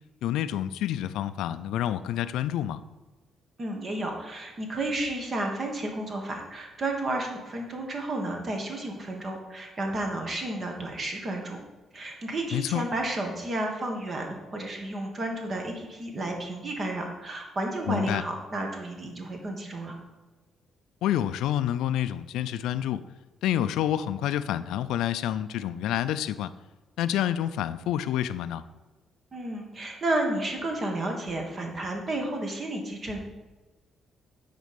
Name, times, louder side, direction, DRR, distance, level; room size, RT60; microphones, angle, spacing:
voice 1, 0.2-2.8 12.5-12.9 17.9-18.2 21.0-23.0 23.4-26.5 27.0-28.6, left 11 dB, 90° left, 13 dB, 0.3 m, -28 dB
voice 2, 3.6-11.6 11.9-20.0 29.3-33.2, right 1 dB, 40° right, 2 dB, 1.4 m, -32 dB
9.4 x 4.1 x 5.2 m, 1.2 s
cardioid pair, 90°, 0 cm